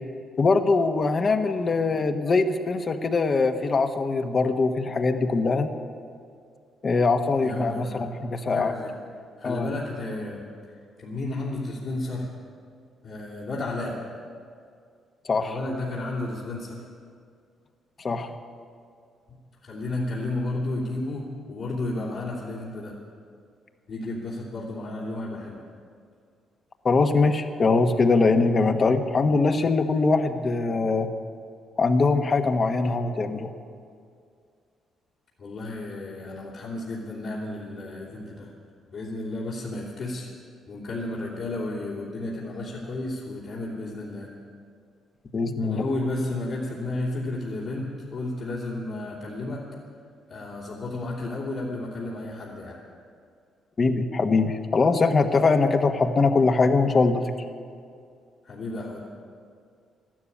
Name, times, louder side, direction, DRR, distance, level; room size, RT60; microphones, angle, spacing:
voice 1, 0.4-5.7 6.8-8.7 9.4-9.7 15.2-15.5 18.0-18.3 26.8-31.1 31.8-33.5 45.3-45.8 53.8-57.3, left 3 dB, 40° left, 7 dB, 1.2 m, -22 dB
voice 2, 7.4-8.1 8.4-8.9 9.4-12.3 13.0-14.0 15.4-16.8 19.6-22.9 23.9-25.6 35.4-38.5 38.9-40.3 40.7-44.3 45.6-49.7 50.3-52.8 58.4-59.0, left 2 dB, 60° left, -7 dB, 3.0 m, -32 dB
13.0 x 12.5 x 8.7 m, 2.2 s
cardioid pair, 90°, 0 cm